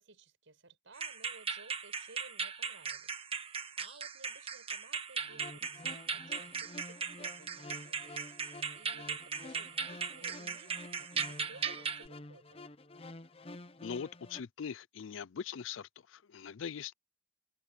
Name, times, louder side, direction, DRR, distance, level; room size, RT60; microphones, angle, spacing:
voice 1, 0.0-8.2 8.7-12.6, right 3 dB, 85° right, 5.7 m, -58 dB
sound 1, 0.9-12.1, right 5 dB, 30° right, 1.5 m, -38 dB
sound 2, 5.2-14.4, left 2 dB, 30° left, 0.8 m, -50 dB
voice 2, 13.8-16.9, left 7 dB, 90° left, 0.5 m, -41 dB
open air
head